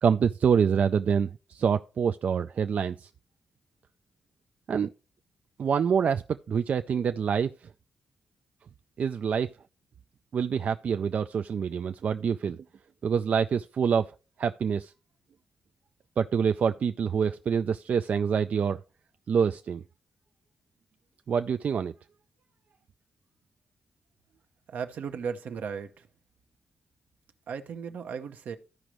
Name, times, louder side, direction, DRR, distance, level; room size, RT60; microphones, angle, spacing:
voice 1, 0.0-3.1 4.7-4.9 5.6-6.2 6.5-7.5 9.0-9.5 10.3-12.6 13.0-14.1 14.4-14.9 16.2-18.8 19.3-19.8 21.3-21.9, right 7 dB, 60° right, 0.3 m, -26 dB
voice 2, 24.7-26.1 27.5-28.6, right 6 dB, 75° right, 0.8 m, -36 dB
14.0 x 5.1 x 3.0 m
cardioid pair, 70°, 3 cm